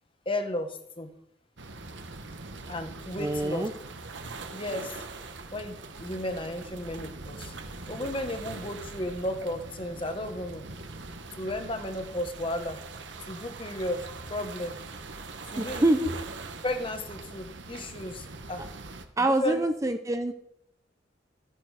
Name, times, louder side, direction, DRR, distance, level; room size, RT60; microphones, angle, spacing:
voice 1, 0.2-1.1 2.7-3.7 4.5-5.0 5.5-7.5 7.9-10.7 11.4-12.8 13.3-14.8 15.5-15.8 16.6-18.7 19.2-19.7, left 1 dB, 30° left, 8 dB, 1.1 m, -34 dB
sound 1, 1.6-19.1, right 3 dB, 75° right, 1.1 m, -42 dB
voice 2, 3.2-3.7 15.6-16.1 19.2-20.3, right 1 dB, 15° right, 8 dB, 0.5 m, -25 dB
13.5 x 9.2 x 4.9 m, 0.78 s
head